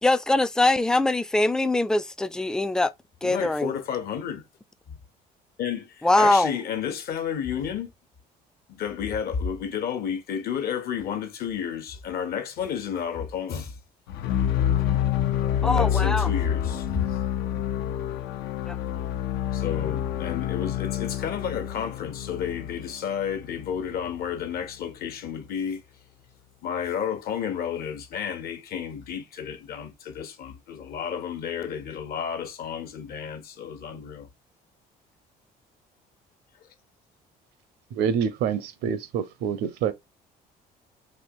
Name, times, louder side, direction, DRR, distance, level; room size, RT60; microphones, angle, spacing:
voice 1, 0.0-2.9 3.2-3.7 6.0-6.5 15.6-16.3 18.7-18.8, left 2 dB, 5° left, 0.3 m, -22 dB
voice 2, 3.2-4.4 4.9-5.0 5.6-7.9 8.7-13.8 15.6-17.2 19.5-25.8 26.6-34.3, left 8 dB, 65° left, 1.0 m, -31 dB
sound 1, 14.1-24.1, left 10 dB, 85° left, 0.5 m, -27 dB
voice 3, 37.9-39.9, right 7 dB, 80° right, 0.8 m, -26 dB
4.2 x 2.9 x 2.4 m
cardioid pair, 110°, 17 cm